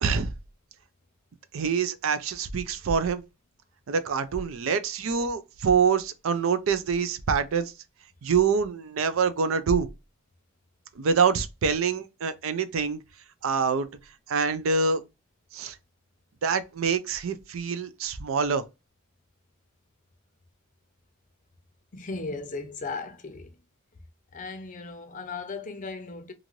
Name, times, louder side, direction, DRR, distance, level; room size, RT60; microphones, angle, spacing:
voice 1, 1.5-3.2 3.9-7.7 8.2-9.9 11.0-13.0 13.4-13.9 14.3-15.0 15.5-15.8 16.4-18.6, right 5 dB, 70° right, 0.4 m, -25 dB
voice 2, 21.9-23.5 24.3-26.3, left 3 dB, 40° left, 0.5 m, -36 dB
2.6 x 2.5 x 3.0 m
head